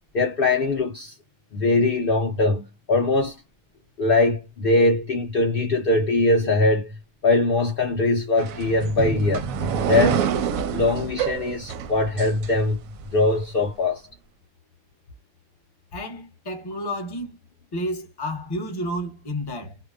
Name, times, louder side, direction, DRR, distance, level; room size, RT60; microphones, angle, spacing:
voice 1, 0.1-1.1 1.5-3.3 4.0-6.9 7.2-9.4 9.9-10.2 10.7-12.8 13.1-14.0, left 2 dB, 80° left, 0.5 m, -21 dB
sound 1, 8.4-13.1, right 7 dB, 70° right, 0.9 m, -27 dB
voice 2, 15.9-17.4 17.7-19.8, equal, 25° left, 0.5 m, -31 dB
2.8 x 2.1 x 2.3 m
omnidirectional pair, 1.7 m